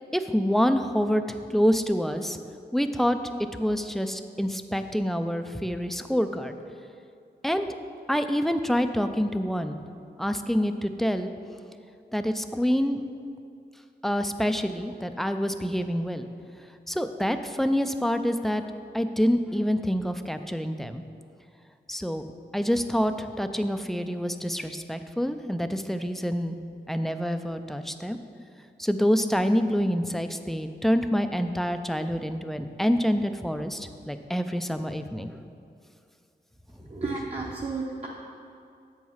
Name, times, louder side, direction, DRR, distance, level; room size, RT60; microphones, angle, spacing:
voice 1, 0.1-2.4 2.7-6.6 7.4-7.7 8.1-9.8 10.2-11.3 12.1-13.0 14.0-16.3 16.9-18.6 18.9-21.0 21.9-22.2 22.5-26.6 26.9-28.2 28.8-35.4, equal, ahead, 8 dB, 0.4 m, -26 dB
voice 2, 36.9-38.1, right 3 dB, 35° right, -3 dB, 0.8 m, -32 dB
7.9 x 4.7 x 5.6 m, 2.5 s
wide cardioid pair, 70°, 18 cm